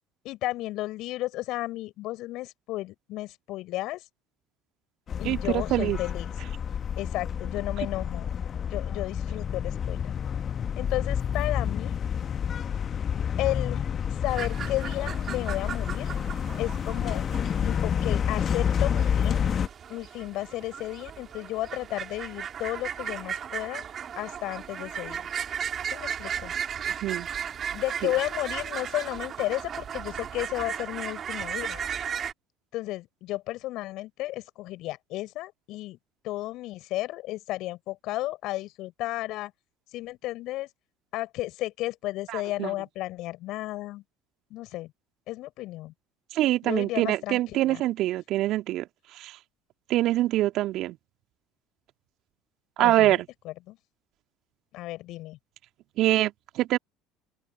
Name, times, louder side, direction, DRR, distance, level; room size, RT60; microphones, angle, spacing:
voice 1, 0.2-4.0 5.2-6.3 7.0-8.3 8.7-10.0 10.8-11.9 13.4-13.8 14.2-16.1 16.6-17.2 17.6-19.4 19.9-23.8 24.2-25.3 25.9-26.5 27.7-31.8 32.7-36.0 36.2-39.5 39.9-40.7 41.1-44.0 44.5-44.9 45.3-45.9 46.6-47.8 52.8-53.8 54.7-55.4, left 17 dB, 60° left, 6.1 m, -33 dB
sound 1, 5.1-19.7, left 8 dB, 40° left, 1.6 m, -29 dB
voice 2, 5.2-6.0 26.9-27.3 28.0-28.1 42.3-42.7 46.3-48.9 49.1-49.4 49.9-51.0 52.8-53.3 56.0-56.8, right 15 dB, 55° right, 2.2 m, -25 dB
sound 2, 14.3-32.3, right 8 dB, 40° right, 4.4 m, -36 dB
open air
hypercardioid pair, 65°, 0 cm